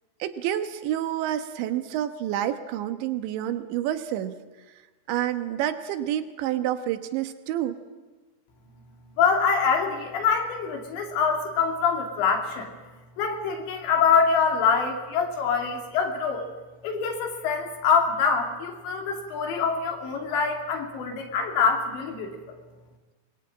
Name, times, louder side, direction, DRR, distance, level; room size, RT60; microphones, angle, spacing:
voice 1, 0.2-4.4 5.1-7.8, right 11 dB, 90° right, 9 dB, 3.5 m, -28 dB
voice 2, 9.2-12.7 13.2-16.5 16.8-22.6, left 6 dB, 85° left, 2 dB, 5.1 m, -25 dB
24.5 x 21.5 x 8.8 m, 1.2 s
omnidirectional pair, 5.0 m